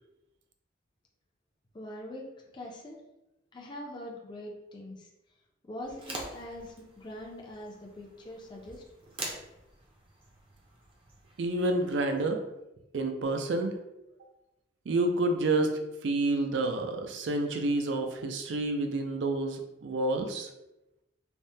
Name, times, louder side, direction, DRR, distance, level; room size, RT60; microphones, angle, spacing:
voice 1, 1.7-2.2 2.5-3.0 3.5-5.1 5.7-8.8, left 1 dB, 25° left, -1 dB, 0.4 m, -43 dB
sound 1, 5.8-12.2, right 2 dB, 30° right, 0.5 m, -45 dB
voice 2, 11.4-12.4 12.9-13.7 14.9-15.7 16.0-20.5, right 2 dB, 80° right, 5 dB, 0.4 m, -29 dB
3.4 x 2.1 x 2.7 m, 0.92 s
head